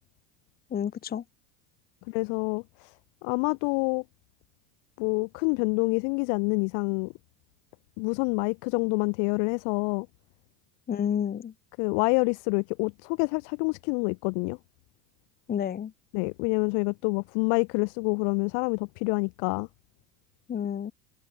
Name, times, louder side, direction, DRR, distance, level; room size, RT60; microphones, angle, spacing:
voice 1, 0.7-1.2 10.9-11.5 15.5-15.9 20.5-20.9, left 8 dB, 20° left, 0.6 m, -30 dB
voice 2, 2.1-2.9 3.2-4.0 5.0-7.1 8.0-10.1 11.8-14.6 16.1-19.7, left 40 dB or more, 60° left, 0.7 m, -27 dB
hypercardioid pair, 90°, 49 cm